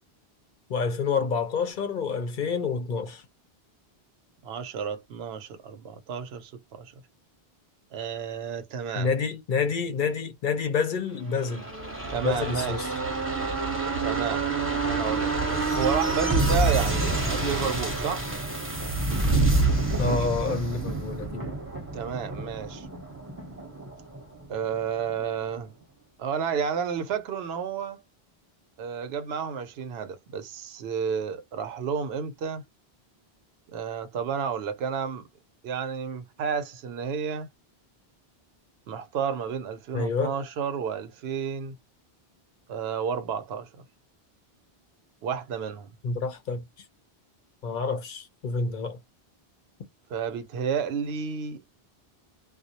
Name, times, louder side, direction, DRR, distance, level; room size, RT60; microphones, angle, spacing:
voice 1, 0.7-3.2 9.0-11.7 12.2-12.9 20.0-21.5 39.9-40.3 46.0-46.6 47.6-49.0, left 5 dB, 60° left, 0.7 m, -28 dB
voice 2, 4.4-6.9 7.9-9.1 12.1-12.9 14.0-14.5 14.8-18.2 21.9-22.9 24.5-25.7 26.2-28.0 28.8-32.6 33.7-35.2 35.6-37.5 38.9-41.8 42.7-43.7 45.2-45.9 50.1-51.6, right 7 dB, 80° right, 0.8 m, -31 dB
sound 1, 11.3-24.8 25.1-25.2, right 3 dB, 15° right, 0.8 m, -27 dB
2.3 x 2.0 x 2.8 m
omnidirectional pair, 1.0 m